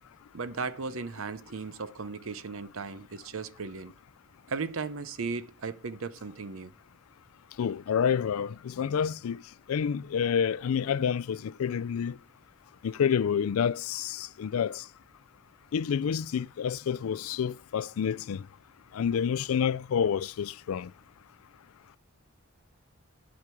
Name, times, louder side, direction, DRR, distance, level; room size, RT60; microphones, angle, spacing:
voice 1, 0.3-3.9 4.5-6.7, right 4 dB, 75° right, 0.7 m, -36 dB
voice 2, 7.6-9.4 9.7-12.2 12.8-14.8 15.7-18.4 18.9-20.9, left 7 dB, 90° left, 0.4 m, -28 dB
11.5 x 5.1 x 6.0 m
head